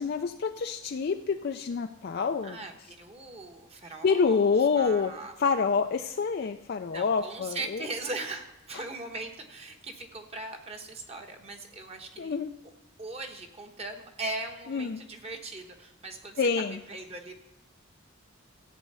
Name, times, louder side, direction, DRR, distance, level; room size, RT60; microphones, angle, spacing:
voice 1, 0.0-2.6 4.0-5.1 5.4-7.8 12.2-12.5 14.7-15.0 16.4-16.8, left 5 dB, 50° left, 6 dB, 0.4 m, -27 dB
voice 2, 2.1-4.5 4.7-5.3 6.9-12.3 13.0-17.3, right 2 dB, 30° right, 4 dB, 1.1 m, -39 dB
14.0 x 8.4 x 5.5 m, 0.94 s
head